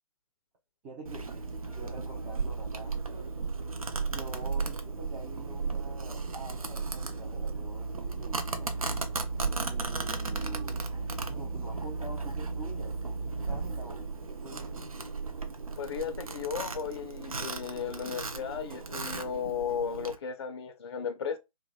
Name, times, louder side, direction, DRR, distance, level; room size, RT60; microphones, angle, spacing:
voice 1, 0.8-1.3 1.7-2.9 4.1-8.7 9.6-10.8 11.3-14.9, right 3 dB, 15° right, 0.4 m, -46 dB
Domestic sounds home sounds, 1.1-20.2, right 4 dB, 80° right, 0.5 m, -35 dB
voice 2, 15.8-21.4, left 7 dB, 50° left, 0.4 m, -35 dB
2.8 x 2.1 x 2.4 m
figure-of-eight pair, 130°, 18 cm